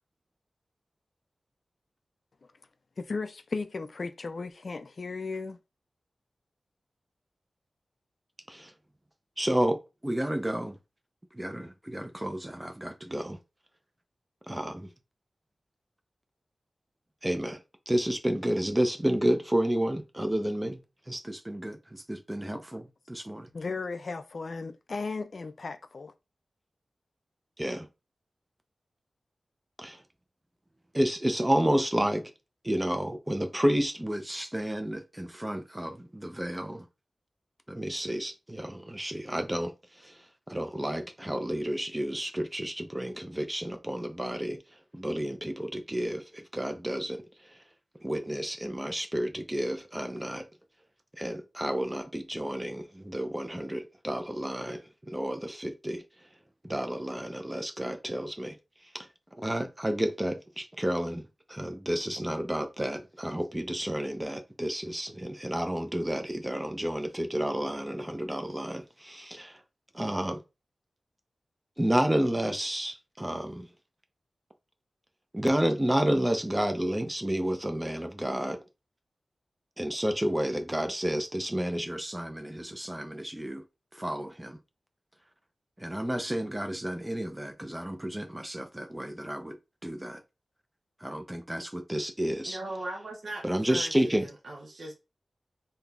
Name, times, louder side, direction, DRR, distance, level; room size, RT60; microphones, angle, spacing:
voice 1, 3.0-5.6 23.5-26.1, left 4 dB, 60° left, 0.3 m, -35 dB
voice 2, 9.4-10.8 11.3-13.4 14.5-14.9 17.2-17.6 17.9-20.8 21.1-23.5 27.6-27.9 29.8-30.0 30.9-32.2 32.6-36.8 37.7-39.7 40.0-40.1 40.5-44.6 44.9-47.2 48.0-50.4 51.2-54.8 55.1-56.0 56.6-58.6 58.9-59.1 59.4-61.2 61.5-69.6 69.9-70.4 71.8-73.7 75.3-78.6 79.8-83.6 84.0-84.6 85.8-89.6 89.8-90.2 91.0-92.6 93.4-94.3, right 1 dB, 15° right, 0.5 m, -31 dB
voice 3, 92.4-94.9, right 2 dB, 70° right, 0.8 m, -39 dB
3.5 x 2.8 x 2.3 m
wide cardioid pair, 90°, 0 cm